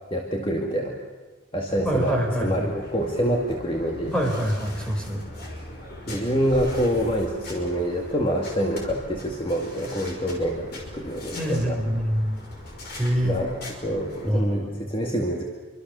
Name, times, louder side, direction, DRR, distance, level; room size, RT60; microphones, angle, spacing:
voice 1, 0.1-1.0 1.5-4.1 6.1-11.8 13.1-15.4, equal, 25° left, 0 dB, 2.1 m, -26 dB
sound 1, 1.7-14.3, left 1 dB, 50° left, 5.6 m, -40 dB
voice 2, 1.8-2.7 4.1-5.2 11.3-12.4 13.0-13.3 14.2-14.7, equal, 5° left, 1 dB, 4.5 m, -25 dB
26.5 x 25.0 x 6.9 m, 1.4 s
head